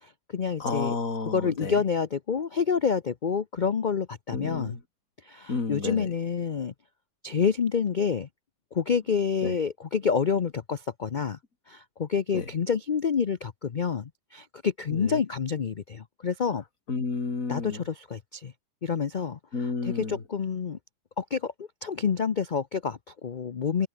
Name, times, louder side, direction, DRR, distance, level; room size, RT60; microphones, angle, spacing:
voice 1, 0.0-0.9 1.3-4.8 5.2-6.7 7.2-8.3 8.7-11.4 11.7-16.6 17.5-18.5 18.8-19.4 19.8-20.8 21.2-23.9, left 6 dB, 65° left, 0.4 m, -28 dB
voice 2, 0.6-1.8 4.3-4.8 5.5-6.1 9.4-9.5 12.3-12.5 14.9-15.2 16.9-17.8 19.5-20.2, left 4 dB, 50° left, 3.3 m, -31 dB
omnidirectional pair, 1.8 m